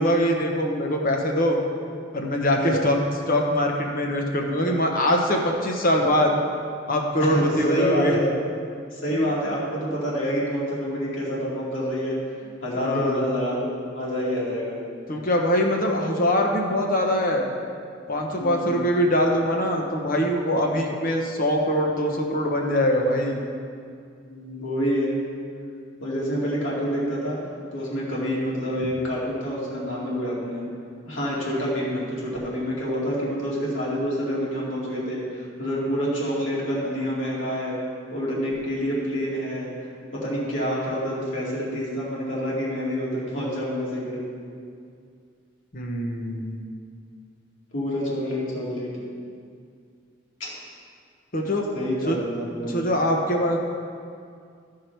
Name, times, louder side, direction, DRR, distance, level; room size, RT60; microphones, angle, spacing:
voice 1, 0.0-1.6 2.1-3.0 3.3-6.3 6.9-8.2 9.1-9.3 12.8-13.3 15.1-17.5 18.1-23.4 45.7-46.6 51.3-51.6 52.1-52.2 52.6-53.6, equal, 45° left, 1 dB, 1.0 m, -23 dB
voice 2, 2.6-2.9 7.2-8.3 8.9-12.2 12.6-13.7 14.0-14.8 18.4-18.8 24.3-25.2 26.0-27.4 27.7-30.6 31.0-37.8 38.1-39.7 40.1-44.3 47.7-49.0 50.4-50.5 51.7-52.7, equal, 75° left, -6 dB, 2.4 m, -27 dB
13.5 x 4.8 x 4.6 m, 2.3 s
head